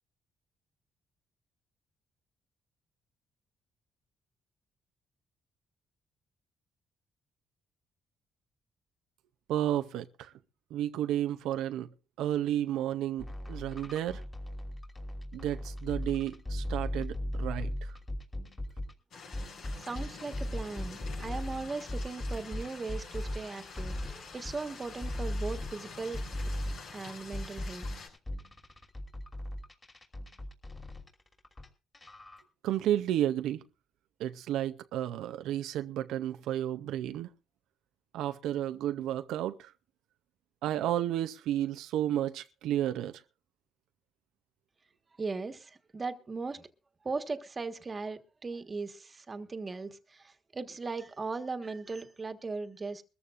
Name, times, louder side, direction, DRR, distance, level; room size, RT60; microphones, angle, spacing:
voice 1, 9.5-10.3 10.7-11.9 12.2-14.2 15.3-17.9 32.6-33.6 34.2-37.3 38.1-39.7 40.6-43.2, right 12 dB, 90° right, 0.6 m, -32 dB
sound 1, 13.2-18.9 19.3-31.7 31.9-32.4, left 1 dB, 25° left, 3.1 m, -38 dB
sound 2, 19.1-28.1, left 5 dB, 70° left, 6.5 m, -47 dB
voice 2, 19.8-26.2 26.9-27.9 45.2-46.7 47.0-53.0, right 4 dB, 30° right, 1.4 m, -38 dB
22.5 x 14.0 x 2.5 m
cardioid pair, 90°, 0 cm